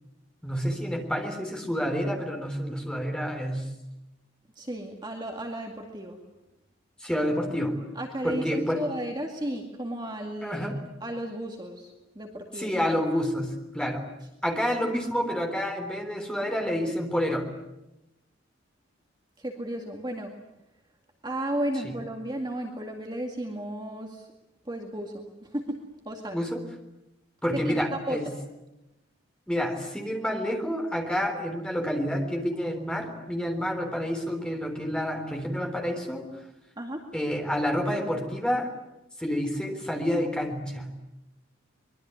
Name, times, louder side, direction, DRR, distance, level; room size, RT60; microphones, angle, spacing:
voice 1, 0.4-3.7 7.0-7.8 8.2-8.8 10.4-10.8 12.5-14.1 14.4-17.5 21.8-22.0 26.3-26.6 27.4-28.3 29.5-36.4 37.1-38.7 39.2-40.9, equal, 5° left, 3 dB, 3.7 m, -29 dB
voice 2, 4.6-6.2 8.0-10.7 11.0-12.7 19.4-20.3 21.2-24.2 24.7-25.2 25.5-26.4 27.5-28.2 36.8-37.1, right 1 dB, 20° right, 2 dB, 2.2 m, -34 dB
24.5 x 22.5 x 9.6 m, 0.95 s
head